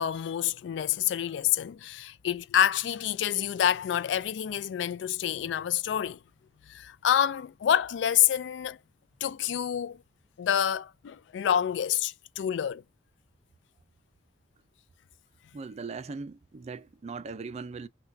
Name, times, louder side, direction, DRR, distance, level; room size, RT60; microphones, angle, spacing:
voice 1, 0.0-6.2 6.7-8.8 9.2-10.0 10.4-12.8, left 10 dB, 70° left, 0.3 m, -27 dB
voice 2, 15.5-17.9, right 4 dB, 35° right, 0.4 m, -39 dB
5.7 x 2.2 x 2.6 m
head